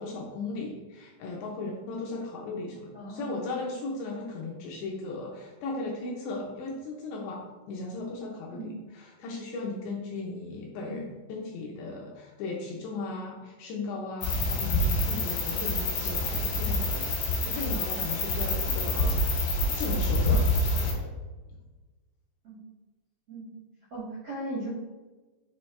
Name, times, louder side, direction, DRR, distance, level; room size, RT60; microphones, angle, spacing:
voice 1, 0.0-19.4 19.7-21.1, left 3 dB, 80° left, -1 dB, 2.6 m, -37 dB
voice 2, 2.9-3.3 8.5-8.7 10.8-10.9 18.7-18.8 22.4-22.6 23.3-23.5 23.9-24.7, right 1 dB, 85° right, -9 dB, 1.3 m, -37 dB
sound 1, 14.2-20.9, left 2 dB, 65° left, 2.4 m, -27 dB
6.9 x 4.4 x 3.2 m, 1.3 s
omnidirectional pair, 5.6 m